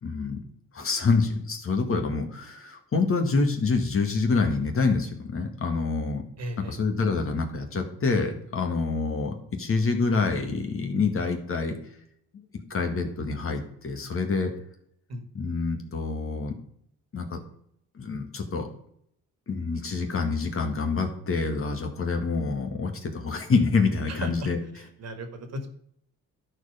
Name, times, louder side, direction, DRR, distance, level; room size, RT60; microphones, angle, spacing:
voice 1, 0.0-0.4 0.7-6.2 6.7-11.8 12.3-12.4 12.7-14.5 15.4-16.5 17.1-17.4 18.0-18.7 19.5-24.6, left 4 dB, 45° left, 4 dB, 2.0 m, -26 dB
voice 2, 6.4-6.8 15.1-15.2 24.1-24.5 24.7-25.7, right 1 dB, 60° right, 7 dB, 1.8 m, -36 dB
12.5 x 4.8 x 5.1 m, 0.70 s
cardioid pair, 90°, 30 cm